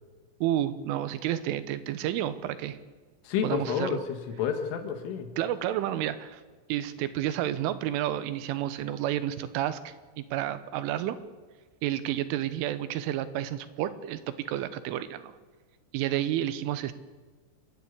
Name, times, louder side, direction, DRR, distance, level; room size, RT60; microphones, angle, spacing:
voice 1, 0.4-2.8 3.4-4.0 5.4-6.4 6.7-11.2 11.8-15.3 15.9-16.9, right 12 dB, 90° right, 12 dB, 3.6 m, -30 dB
voice 2, 3.3-5.3, left 7 dB, 85° left, 7 dB, 4.2 m, -30 dB
28.0 x 12.0 x 8.3 m, 1.4 s
omnidirectional pair, 5.5 m